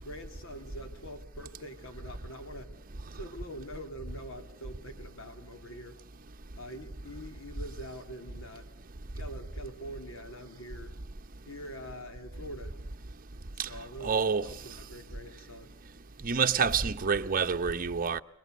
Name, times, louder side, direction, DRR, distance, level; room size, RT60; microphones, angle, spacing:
voice 1, 0.0-2.7 3.1-6.0 6.6-8.7 9.1-10.9 11.4-12.7 13.5-15.7, equal, 70° left, 3.2 m, -44 dB
voice 2, 14.0-14.4 16.2-18.2, right 6 dB, 40° right, 0.9 m, -27 dB
29.0 x 21.5 x 6.7 m
head